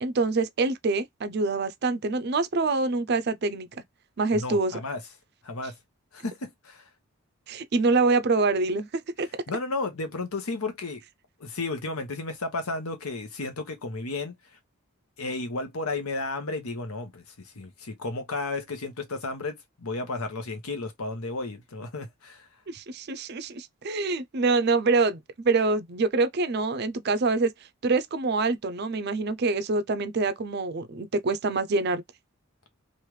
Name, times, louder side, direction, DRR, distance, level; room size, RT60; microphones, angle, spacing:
voice 1, 0.0-3.7 4.2-4.8 7.5-9.3 22.7-27.5 27.8-32.0, right 3 dB, 50° right, 0.4 m, -25 dB
voice 2, 4.3-5.0 5.4-5.7 6.1-6.8 9.5-11.0 11.4-14.3 15.2-22.5, left 3 dB, 80° left, 1.0 m, -33 dB
3.2 x 2.5 x 3.1 m
head